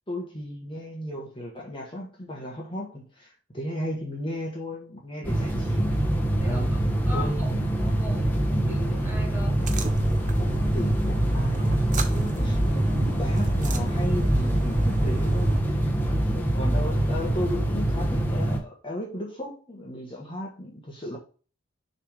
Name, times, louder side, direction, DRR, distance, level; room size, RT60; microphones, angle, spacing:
voice 1, 0.1-6.0 6.4-6.7 7.1-7.3 10.4-11.8 12.3-15.8 16.1-21.2, left 1 dB, 25° left, -1 dB, 1.4 m, -35 dB
sound 1, 5.2-18.6, right 1 dB, 10° left, 1.1 m, -24 dB
voice 2, 6.4-9.6 12.1-12.5, left 1 dB, 10° right, 0 dB, 2.2 m, -40 dB
sound 2, 9.6-15.6, right 1 dB, 40° right, 0.7 m, -31 dB
6.6 x 3.5 x 5.0 m, 0.36 s
head